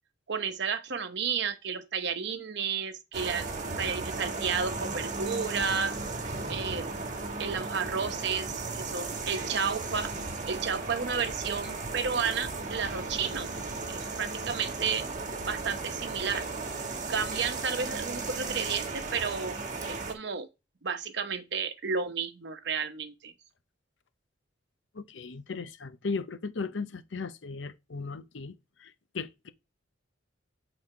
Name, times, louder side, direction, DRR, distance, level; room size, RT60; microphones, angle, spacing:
voice 1, 0.3-3.4 3.8-6.0 6.5-6.9 7.4-10.1 10.5-13.5 13.9-15.1 15.4-16.4 17.1-19.6 19.9-20.5 20.8-23.3, right 6 dB, 65° right, 0.9 m, -32 dB
sound 1, 3.1-20.1, right 3 dB, 40° right, 1.3 m, -35 dB
voice 2, 24.9-29.5, left 4 dB, 70° left, 0.7 m, -37 dB
7.7 x 4.2 x 4.5 m
head